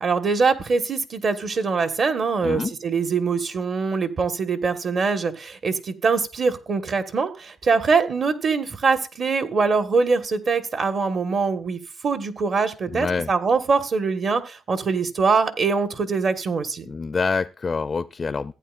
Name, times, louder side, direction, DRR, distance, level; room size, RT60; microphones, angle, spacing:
voice 1, 0.0-16.9, right 4 dB, 50° right, 1.4 m, -23 dB
voice 2, 2.4-2.8 12.9-13.3 16.9-18.5, left 4 dB, 35° left, 0.4 m, -26 dB
15.0 x 9.1 x 2.5 m
cardioid pair, 90°, 0 cm